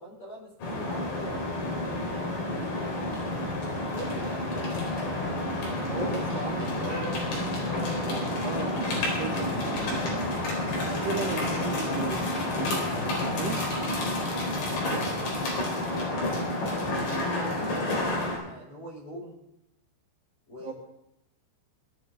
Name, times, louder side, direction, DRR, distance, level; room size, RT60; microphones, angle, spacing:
voice 1, 0.0-4.4 11.3-12.5 14.9-19.4 20.5-20.7, equal, 30° left, -2 dB, 4.7 m, -43 dB
sound 1, 0.6-18.4, left 1 dB, 70° left, 6.4 m, -29 dB
voice 2, 5.7-7.6 8.0-8.8 9.2-10.3 10.8-12.2 13.3-13.6 20.6-20.7, right 5 dB, 55° right, -3 dB, 3.2 m, -36 dB
20.5 x 12.5 x 3.9 m, 0.85 s
omnidirectional pair, 5.1 m